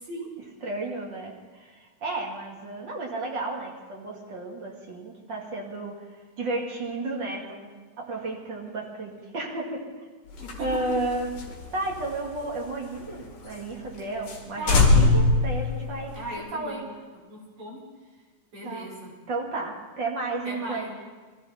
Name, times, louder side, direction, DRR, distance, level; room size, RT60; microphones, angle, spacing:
voice 1, 0.0-0.3 10.4-10.7 14.6-14.9 16.1-16.9 17.3-17.8 18.5-19.1 20.4-20.9, equal, 65° right, -7 dB, 6.4 m, -37 dB
voice 2, 0.6-5.9 6.4-7.7 8.0-9.8 10.6-11.3 11.7-16.1 16.5-16.9 18.6-18.9 19.3-20.9, right 2 dB, 40° right, -2 dB, 2.7 m, -32 dB
sound 1, 10.3-13.2 13.5-13.6 13.9-14.0 14.3-14.4 14.7-16.4, left 3 dB, 50° left, 2.9 m, -23 dB
22.0 x 15.5 x 4.2 m, 1.4 s
omnidirectional pair, 3.6 m